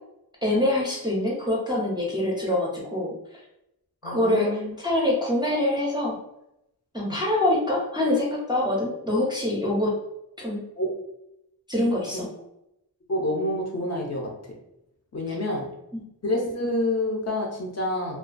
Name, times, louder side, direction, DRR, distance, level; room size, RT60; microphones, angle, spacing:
voice 1, 0.4-3.1 4.0-6.1 6.9-9.9 10.4-10.6 11.7-12.3 15.9-16.0, left 1 dB, 10° right, -5 dB, 0.4 m, -25 dB
voice 2, 4.0-4.7 7.0-7.2 10.8-10.9 12.1-12.3 13.1-14.3 15.1-15.7 16.2-18.2, left 1 dB, 40° left, -1 dB, 0.5 m, -28 dB
2.3 x 2.2 x 2.4 m, 0.85 s
wide cardioid pair, 145°, 39 cm